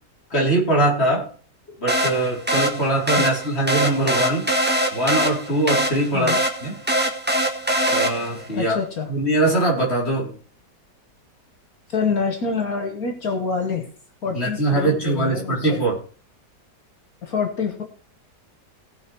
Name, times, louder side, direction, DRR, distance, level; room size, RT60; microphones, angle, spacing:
voice 1, 0.3-1.3 1.8-4.5 4.9-6.3 6.6-6.8 7.9-8.8 9.1-10.3 14.3-16.0, right 2 dB, 35° left, -3 dB, 4.7 m, -22 dB
sound 1, 1.9-8.5, right 1 dB, 5° right, 1.5 m, -23 dB
voice 2, 8.5-9.1 11.9-13.9 14.2-15.8 17.2-17.8, left 5 dB, 55° left, 4 dB, 1.9 m, -26 dB
18.0 x 6.1 x 4.6 m, 0.40 s
omnidirectional pair, 1.8 m